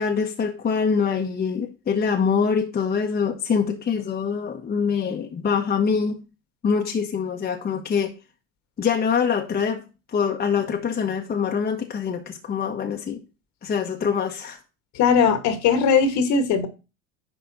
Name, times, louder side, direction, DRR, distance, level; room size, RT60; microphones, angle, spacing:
voice 1, 0.0-6.2 6.6-8.1 8.8-9.8 10.1-13.2 13.6-14.6, left 6 dB, 25° left, 1.4 m, -24 dB
voice 2, 14.9-16.7, left 6 dB, 45° left, 1.8 m, -19 dB
10.5 x 3.6 x 4.2 m
hypercardioid pair, 85°, 39 cm